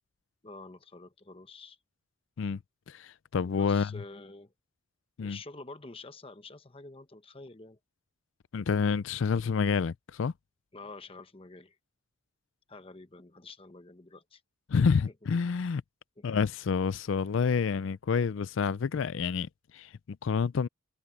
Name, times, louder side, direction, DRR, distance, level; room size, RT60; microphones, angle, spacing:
voice 1, 0.4-1.8 3.4-4.5 5.2-7.8 10.7-11.8 12.7-14.4 16.2-16.3, left 3 dB, 25° left, 1.0 m, -48 dB
voice 2, 2.9-4.0 5.2-5.4 8.5-10.3 14.7-15.8 16.2-20.7, left 5 dB, 60° left, 0.4 m, -28 dB
head